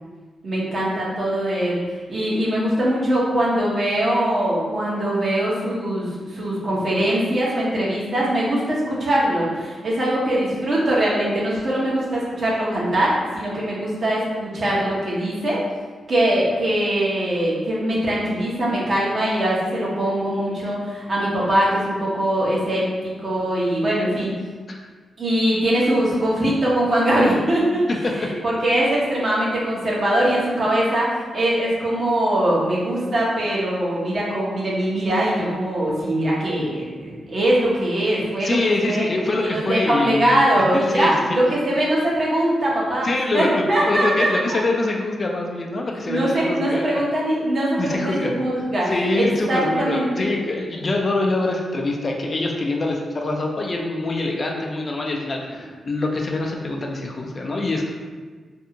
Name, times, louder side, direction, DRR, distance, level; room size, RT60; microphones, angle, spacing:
voice 1, 0.4-1.8 2.1-15.6 16.1-24.3 25.2-27.9 28.2-38.6 38.8-39.0 39.4-43.1 43.3-44.6 46.1-50.3, right 1 dB, 55° right, -6 dB, 0.9 m, -22 dB
voice 2, 38.4-40.3 40.7-41.4 43.0-47.0 47.8-48.3 48.9-57.9, left 2 dB, 45° left, 0 dB, 0.4 m, -24 dB
2.6 x 2.4 x 2.7 m, 1.5 s
cardioid pair, 60°, 0 cm